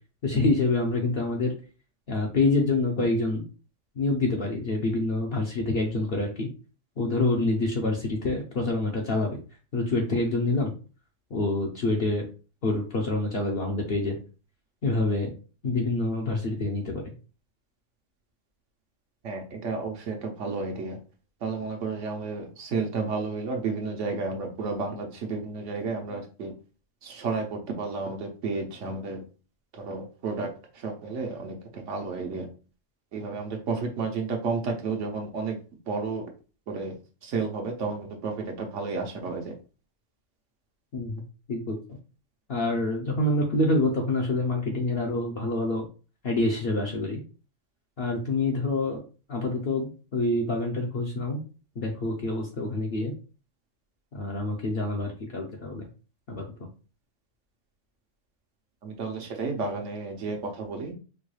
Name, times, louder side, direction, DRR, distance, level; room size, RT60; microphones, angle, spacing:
voice 1, 0.2-1.5 2.1-3.4 4.0-6.5 7.0-9.4 9.7-10.7 11.3-12.3 12.6-14.2 14.8-15.3 15.6-17.1 40.9-41.2 41.5-41.8 42.5-45.8 46.2-47.2 48.0-49.0 49.3-51.4 51.8-53.1 54.1-55.9 56.3-56.5, left 2 dB, 55° left, -1 dB, 0.8 m, -26 dB
voice 2, 19.2-21.0 21.4-26.5 27.0-29.2 29.7-32.5 33.1-35.6 35.9-36.3 36.7-36.9 37.2-39.5 58.8-60.9, right 4 dB, 75° right, 2 dB, 1.1 m, -32 dB
4.6 x 2.3 x 3.1 m, 0.35 s
omnidirectional pair, 1.3 m